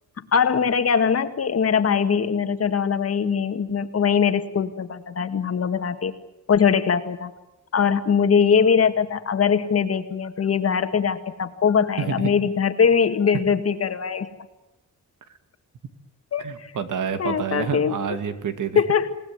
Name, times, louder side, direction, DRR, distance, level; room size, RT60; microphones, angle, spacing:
voice 1, 0.3-6.1 6.5-7.3 7.7-14.3 16.3-16.7 17.2-18.2 18.8-19.2, left 6 dB, 45° left, 8 dB, 1.9 m, -21 dB
voice 2, 12.0-12.3 16.4-18.8, right 6 dB, 70° right, 9 dB, 2.6 m, -28 dB
28.5 x 18.5 x 9.6 m, 0.99 s
wide cardioid pair, 165°, 32 cm